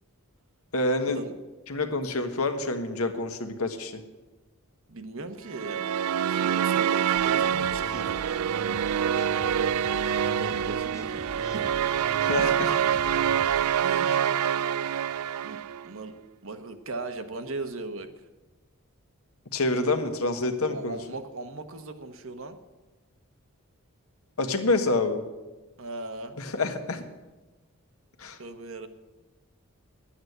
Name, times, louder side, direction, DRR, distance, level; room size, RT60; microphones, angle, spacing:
voice 1, 0.7-1.2 1.7-4.0 12.2-12.7 14.1-14.2 19.5-21.0 24.4-25.2 26.4-27.0 28.2-28.4, left 2 dB, 75° left, 7 dB, 1.3 m, -27 dB
voice 2, 4.9-5.8 6.3-8.2 9.8-10.0 10.4-11.6 13.7-14.3 15.4-16.1 16.4-18.1 20.6-22.6 25.8-26.4 28.4-28.9, right 2 dB, 65° right, 8 dB, 1.1 m, -38 dB
sound 1, 5.5-15.9, right 9 dB, 80° right, 0.4 m, -26 dB
sound 2, 7.2-13.7, left 1 dB, 15° left, 0.7 m, -44 dB
11.0 x 8.7 x 7.9 m, 1.1 s
head